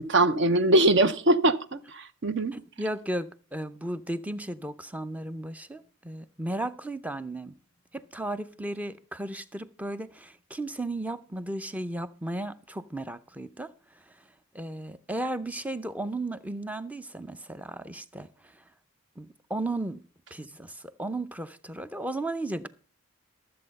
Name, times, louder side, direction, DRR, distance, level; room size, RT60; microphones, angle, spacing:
voice 1, 0.1-2.5, right 2 dB, 55° right, 0.7 m, -22 dB
voice 2, 2.5-7.5 7.9-13.7 14.5-18.5 19.2-20.0 20.3-22.7, right 1 dB, 5° right, 0.5 m, -35 dB
13.0 x 7.7 x 5.3 m
head